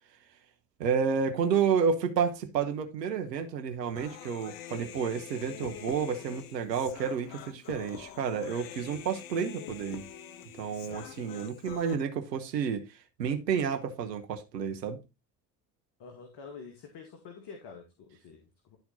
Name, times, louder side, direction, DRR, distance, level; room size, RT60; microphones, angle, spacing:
voice 1, 0.8-10.1 10.6-12.9 13.2-15.0, right 6 dB, 85° right, 1.2 m, -30 dB
Human voice, 3.9-12.0, left 10 dB, 70° left, 1.0 m, -45 dB
voice 2, 16.0-18.8, left 5 dB, 55° left, 2.3 m, -47 dB
12.0 x 4.3 x 4.1 m
hypercardioid pair, 60°, 48 cm